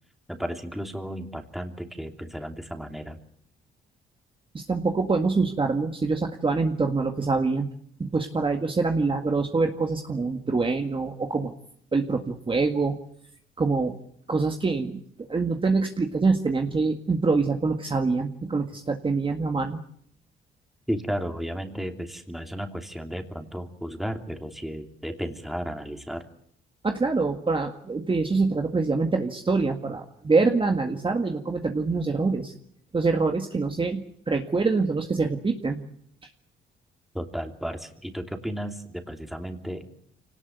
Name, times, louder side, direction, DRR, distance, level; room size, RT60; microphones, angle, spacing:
voice 1, 0.3-3.2 20.9-26.2 37.1-39.9, equal, ahead, 4 dB, 3.0 m, -33 dB
voice 2, 4.5-7.7 8.0-11.5 11.9-13.0 13.6-14.0 14.3-19.8 26.8-32.5 32.9-35.8, right 4 dB, 25° right, 4 dB, 1.9 m, -25 dB
25.5 x 18.5 x 9.4 m, 0.70 s
cardioid pair, 90°, 20 cm